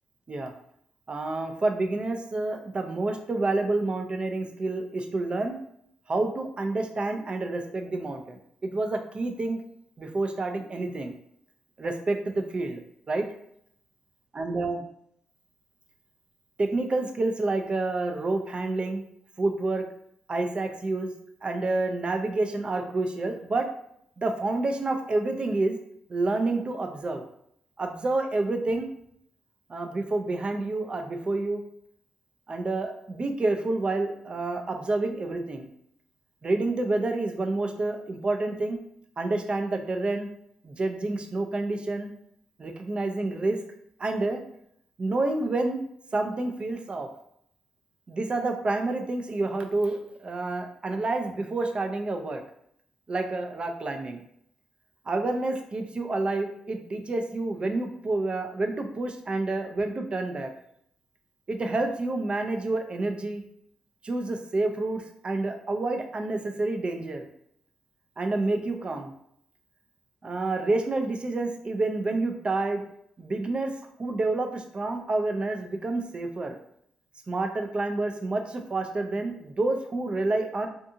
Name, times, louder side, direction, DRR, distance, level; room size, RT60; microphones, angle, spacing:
voice 1, 1.1-5.6 6.1-9.6 10.0-11.1 11.8-12.8 13.1-13.3 14.3-14.8 16.6-19.0 19.4-19.8 20.3-21.1 21.4-23.7 24.2-25.8 26.1-27.2 27.8-28.9 29.7-31.6 32.5-35.7 36.4-38.8 39.2-40.3 40.6-42.1 42.6-43.6 44.0-44.4 45.0-45.8 46.1-47.1 48.1-52.4 53.1-54.2 55.1-60.5 61.5-63.4 64.0-67.3 68.2-69.1 70.2-72.8 73.2-73.7 74.0-76.6 77.3-80.7, right 2 dB, 40° right, 4 dB, 0.5 m, -28 dB
2.6 x 2.5 x 2.7 m, 0.70 s
cardioid pair, 65°, 3 cm